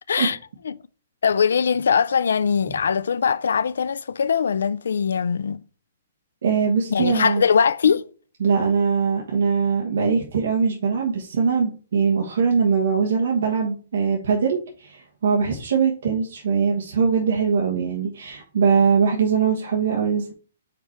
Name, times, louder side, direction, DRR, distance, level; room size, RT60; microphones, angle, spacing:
voice 1, 1.2-5.6 6.9-8.0, left 6 dB, 90° left, 0.3 m, -21 dB
voice 2, 6.4-7.4 8.4-20.3, right 5 dB, 60° right, 1.3 m, -21 dB
5.1 x 4.2 x 4.6 m
hypercardioid pair, 180°, 0 cm